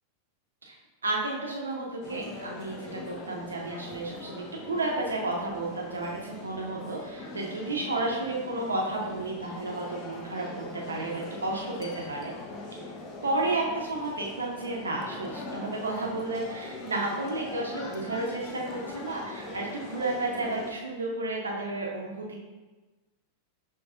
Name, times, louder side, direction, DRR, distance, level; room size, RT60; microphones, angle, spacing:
voice 1, 1.0-12.3 13.2-22.4, right 2 dB, 75° right, -2 dB, 0.9 m, -32 dB
sound 1, 2.0-20.7, left 3 dB, 35° left, 0.6 m, -42 dB
6.1 x 3.1 x 2.3 m, 1.2 s
figure-of-eight pair, 90°, 0 cm